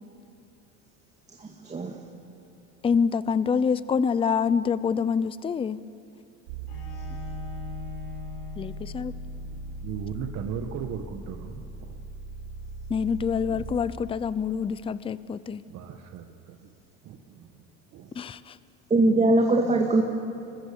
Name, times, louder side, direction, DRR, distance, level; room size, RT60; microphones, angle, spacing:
voice 1, 1.3-2.0 18.9-20.0, right 2 dB, 20° right, 1 dB, 2.0 m, -22 dB
voice 2, 2.8-5.8 8.6-9.1 12.9-15.6 18.2-18.6, left 6 dB, 15° left, 17 dB, 0.5 m, -26 dB
sound 1, 6.5-13.6, right 1 dB, 75° right, 5.6 m, -39 dB
Bowed string instrument, 6.7-9.6, left 7 dB, 90° left, 6.8 m, -43 dB
voice 3, 9.8-12.0 13.5-13.7 15.7-16.7 17.0-17.6 17.9-18.2, right 8 dB, 50° right, 5 dB, 1.5 m, -37 dB
24.0 x 21.5 x 7.0 m, 2.5 s
supercardioid pair, 110°, 33 cm